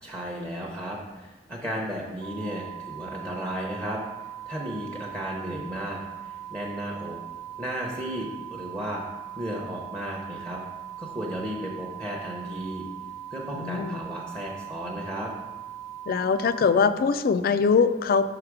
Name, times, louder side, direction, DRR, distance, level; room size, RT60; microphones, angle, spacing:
voice 1, 0.0-4.0 4.5-7.2 7.6-9.0 9.4-10.6 11.0-12.9 13.3-15.3, equal, 15° right, -2 dB, 0.7 m, -34 dB
sound 1, 2.2-16.7, right 12 dB, 60° right, 0.6 m, -40 dB
voice 2, 13.5-14.0 16.1-18.3, left 5 dB, 55° left, 13 dB, 0.3 m, -22 dB
5.7 x 4.8 x 4.7 m, 1.2 s
head